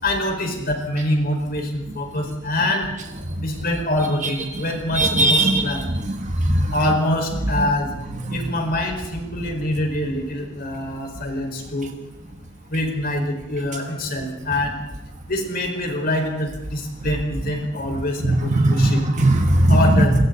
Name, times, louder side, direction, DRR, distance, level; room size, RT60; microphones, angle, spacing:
voice 1, 0.0-2.9 3.4-5.8 6.7-7.9 8.3-11.9 12.7-14.7 15.3-19.0 19.7-20.2, left 1 dB, 50° left, 2 dB, 5.4 m, -25 dB
voice 2, 4.9-5.7 6.2-6.7 18.2-19.8, right 1 dB, 40° right, 3 dB, 1.5 m, -18 dB
29.0 x 22.0 x 4.2 m, 0.96 s
head